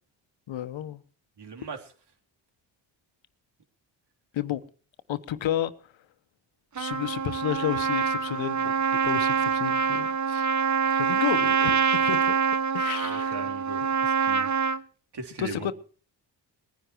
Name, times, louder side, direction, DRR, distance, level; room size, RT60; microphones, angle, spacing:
voice 1, 0.5-1.0 4.3-4.6 5.1-5.7 6.8-8.7 9.0-10.5 10.8-12.4 12.7-13.4 15.4-15.7, left 12 dB, 75° left, 1.3 m, -31 dB
voice 2, 1.4-1.9 13.0-14.8 15.1-15.7, right 4 dB, 60° right, 3.8 m, -39 dB
Trumpet, 6.8-14.8, right 6 dB, 40° right, 1.1 m, -25 dB
20.5 x 10.5 x 4.6 m
supercardioid pair, 60°, 46 cm